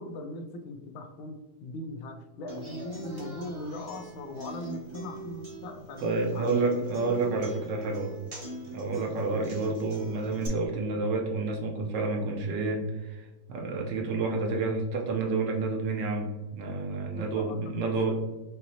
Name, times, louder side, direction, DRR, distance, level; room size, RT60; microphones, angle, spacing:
voice 1, 0.0-6.0 6.3-6.8 9.2-9.4 10.3-10.6 17.2-18.1, left 1 dB, 90° left, 6 dB, 1.4 m, -40 dB
Human voice / Acoustic guitar, 2.5-10.5, right 2 dB, 25° right, 0.6 m, -42 dB
voice 2, 6.0-8.1 8.7-18.2, right 3 dB, 70° right, 1 dB, 1.4 m, -29 dB
5.8 x 2.8 x 2.7 m, 1.1 s
omnidirectional pair, 2.1 m